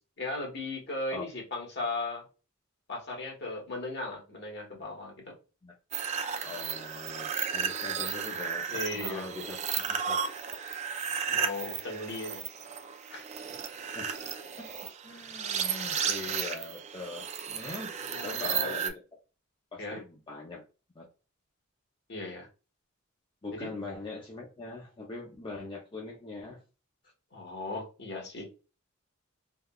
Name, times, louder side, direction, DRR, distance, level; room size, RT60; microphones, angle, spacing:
voice 1, 0.2-2.2 2.9-5.3 8.7-9.3 10.8-10.9 11.3-12.4 13.1-13.6 18.1-18.8 19.8-20.0 22.1-22.5 23.5-23.7 27.3-28.4, left 2 dB, 55° left, 0 dB, 1.2 m, -37 dB
sound 1, 5.9-18.9, right 7 dB, 35° right, 0.3 m, -34 dB
voice 2, 6.4-9.6 9.9-10.2 13.9-14.7 15.0-17.9 18.2-18.9 19.7-20.6 20.9-21.1 23.4-26.6, left 3 dB, 25° left, -3 dB, 0.5 m, -42 dB
3.4 x 2.2 x 2.3 m, 0.32 s
head